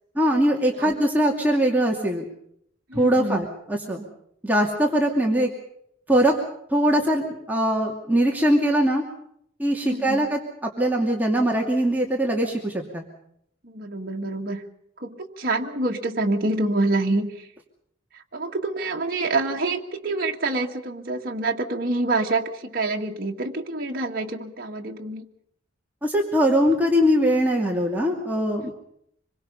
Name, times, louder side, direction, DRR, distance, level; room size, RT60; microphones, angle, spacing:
voice 1, 0.2-2.2 2.9-4.0 4.4-5.5 6.1-6.3 6.7-9.0 9.6-13.0 26.0-28.7, equal, 10° right, -1 dB, 2.6 m, -21 dB
voice 2, 2.9-3.5 9.8-10.3 13.6-14.6 15.0-17.5 18.1-25.3 28.6-28.7, right 2 dB, 50° right, -1 dB, 1.8 m, -27 dB
26.0 x 23.0 x 5.5 m, 0.72 s
head